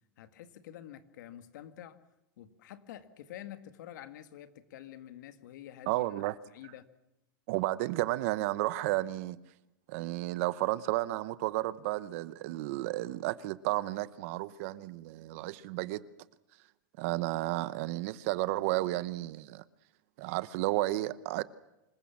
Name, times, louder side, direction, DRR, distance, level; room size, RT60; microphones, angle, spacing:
voice 1, 0.2-2.0 2.4-6.2 6.5-6.9, left 12 dB, 60° left, 2.0 m, -48 dB
voice 2, 5.9-6.4 7.5-9.4 9.9-16.0 17.0-19.6 20.2-21.4, right 17 dB, 40° right, 0.8 m, -32 dB
26.5 x 21.0 x 7.3 m
supercardioid pair, 170°, 11 cm